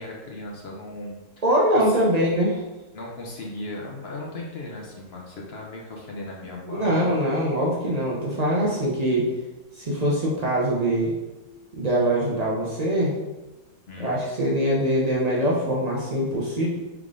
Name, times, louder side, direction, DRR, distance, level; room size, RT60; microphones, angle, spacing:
voice 1, 0.0-1.3 1.7-1.9 2.9-7.1 13.9-14.2, left 2 dB, 50° left, -2 dB, 0.8 m, -37 dB
voice 2, 1.4-2.6 6.7-9.3 9.8-11.1 11.7-13.1 14.0-16.7, equal, 60° right, -5 dB, 0.4 m, -23 dB
3.6 x 3.4 x 3.7 m, 1.1 s
omnidirectional pair, 1.7 m